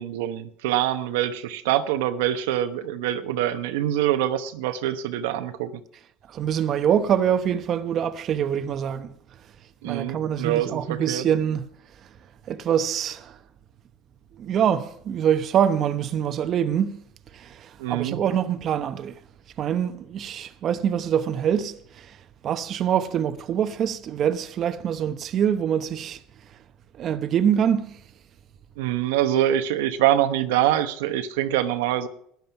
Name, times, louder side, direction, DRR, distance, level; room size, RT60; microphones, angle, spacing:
voice 1, 0.0-5.8 9.8-11.3 17.8-18.2 28.8-32.1, right 12 dB, 85° right, 0.9 m, -24 dB
voice 2, 6.3-9.1 9.8-11.6 12.5-13.4 14.4-17.0 17.3-19.1 19.6-22.2 22.4-26.2 27.0-28.0, right 9 dB, 50° right, 0.9 m, -24 dB
13.0 x 10.5 x 5.9 m
supercardioid pair, 95°, 0 cm